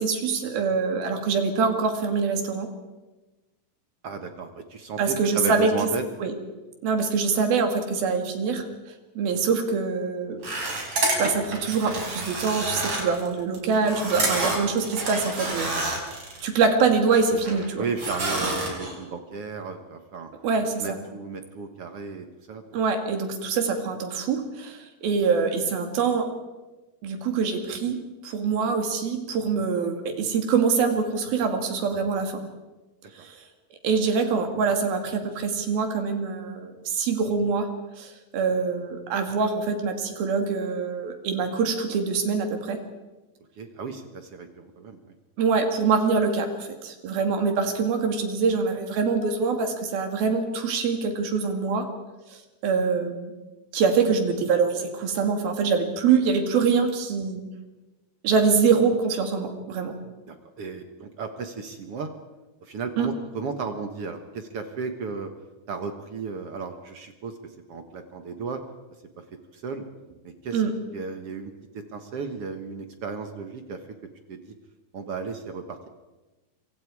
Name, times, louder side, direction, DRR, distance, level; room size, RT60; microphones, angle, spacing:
voice 1, 0.0-2.7 5.0-5.7 6.2-6.3 6.8-8.7 9.2-10.4 11.2-15.9 16.4-17.8 20.4-21.0 22.7-26.3 27.0-28.0 28.2-32.3 33.2-33.4 33.8-37.7 38.0-42.8 45.4-51.9 52.6-53.3 53.7-57.4 58.2-60.0 63.0-63.1 70.5-70.7, right 5 dB, 80° right, 5 dB, 4.2 m, -24 dB
voice 2, 4.0-6.1 17.8-20.3 20.8-22.8 43.6-45.2 60.3-62.1 62.6-65.3 65.7-67.4 67.7-68.6 69.5-69.8 70.2-70.6 70.9-71.5 71.9-73.8 74.3-74.5 74.9-75.9, right 4 dB, 55° right, 7 dB, 1.7 m, -34 dB
sound 1, 10.4-16.5 16.9-17.7 18.0-19.0, right 2 dB, 40° right, 5.5 m, -29 dB
26.0 x 25.0 x 4.8 m, 1.1 s
omnidirectional pair, 4.2 m